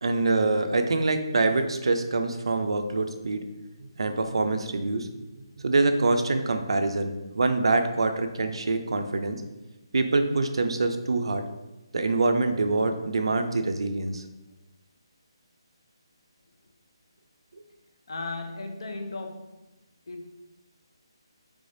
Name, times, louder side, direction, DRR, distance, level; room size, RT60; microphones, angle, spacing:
voice 1, 0.0-3.4 3.8-5.1 5.3-9.4 9.9-11.4 11.9-14.2, right 3 dB, 70° right, 0.4 m, -25 dB
voice 2, 18.1-19.7 20.1-20.3, left 3 dB, 60° left, 0.5 m, -36 dB
3.3 x 3.3 x 2.6 m
hypercardioid pair, 170°, 3 cm